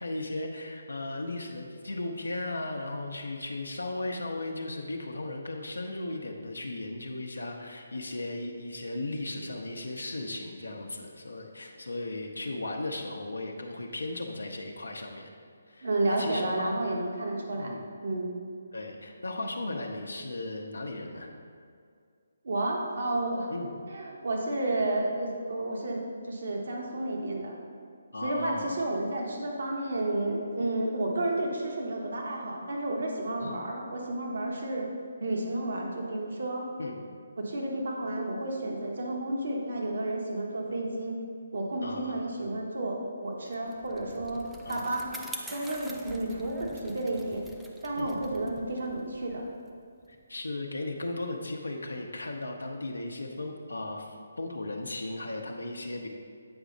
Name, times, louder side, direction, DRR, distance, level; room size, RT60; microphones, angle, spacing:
voice 1, 0.0-15.3 15.7-16.7 17.5-17.8 18.7-21.3 23.5-23.7 28.1-28.8 33.4-33.6 36.8-37.0 41.8-42.5 44.6-44.8 48.0-48.2 50.1-56.1, left 2 dB, 90° left, 1 dB, 0.8 m, -36 dB
voice 2, 15.8-18.3 22.4-23.5 23.9-27.6 28.2-34.9 35.2-36.7 37.4-41.2 41.5-45.1 45.5-47.4 47.8-49.4, right 1 dB, 65° right, 0 dB, 1.3 m, -31 dB
Bicycle, 43.5-50.2, right 1 dB, 5° right, 0.4 m, -46 dB
8.7 x 4.9 x 3.9 m, 2.3 s
figure-of-eight pair, 150°, 0 cm